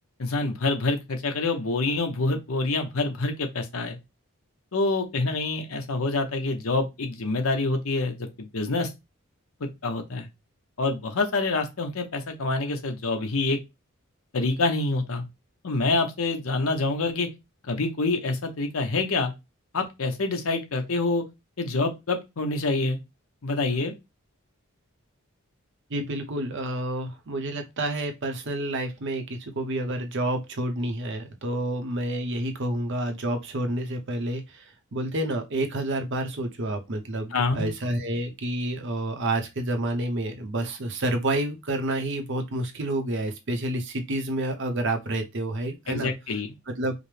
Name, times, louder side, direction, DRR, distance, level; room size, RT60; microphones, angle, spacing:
voice 1, 0.2-4.0 4.7-8.9 9.6-10.3 10.8-13.6 14.3-15.2 15.6-17.3 17.6-19.3 19.7-21.2 21.6-23.0 23.4-23.9 37.3-37.7 45.9-46.5, left 3 dB, 70° left, 0.8 m, -26 dB
voice 2, 25.9-46.1 46.7-46.9, right 1 dB, 55° right, 0.8 m, -29 dB
5.1 x 2.1 x 3.2 m
head